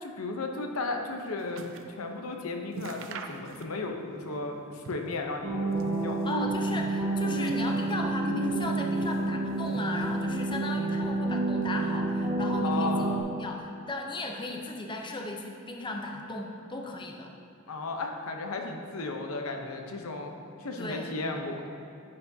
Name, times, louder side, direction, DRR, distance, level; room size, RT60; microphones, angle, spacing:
voice 1, 0.0-6.3 12.6-13.3 17.7-20.3 20.6-21.6, left 3 dB, 70° left, 3 dB, 0.8 m, -35 dB
sound 1, 0.8-2.0 2.3-2.4 2.7-4.0 4.3-5.2 5.6-6.5 7.1-8.1 8.6-9.3 9.6-10.3 11.0-11.1, right 4 dB, 60° right, 0.5 m, -45 dB
sound 2, 5.4-13.2, right 2 dB, 30° right, 1.9 m, -29 dB
voice 2, 6.2-17.3 20.8-21.2, left 2 dB, 20° left, 2 dB, 0.7 m, -36 dB
10.5 x 6.8 x 2.7 m, 2.6 s
head